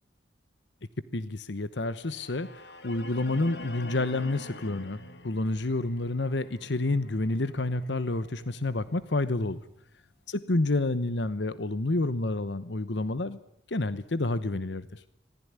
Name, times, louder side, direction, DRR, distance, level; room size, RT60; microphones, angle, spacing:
voice 1, 1.1-5.0 5.2-9.6 10.3-13.4 13.7-15.0, left 2 dB, 85° left, 14 dB, 1.1 m, -29 dB
sound 1, 2.0-10.1, left 1 dB, 70° left, 2.7 m, -46 dB
26.5 x 19.0 x 9.7 m, 0.75 s
head